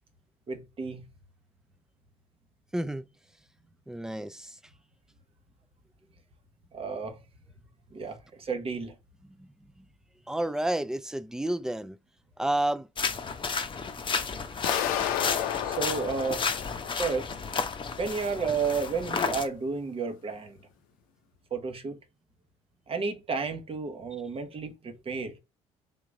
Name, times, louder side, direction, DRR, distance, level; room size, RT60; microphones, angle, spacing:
voice 1, 0.5-1.0 6.7-7.2 7.9-8.9 15.6-16.5 16.9-17.3 18.0-20.6 21.5-22.0 22.9-25.4, right 5 dB, 40° right, 1.2 m, -32 dB
voice 2, 2.7-3.0 3.9-4.5 9.4-9.5 10.3-12.0 12.4-12.9, right 1 dB, 5° right, 0.4 m, -30 dB
sound 1, 13.0-19.5, left 5 dB, 35° left, 0.8 m, -32 dB
sound 2, 14.6-17.5, left 10 dB, 70° left, 0.6 m, -32 dB
3.7 x 2.9 x 3.8 m
hypercardioid pair, 55°, 15 cm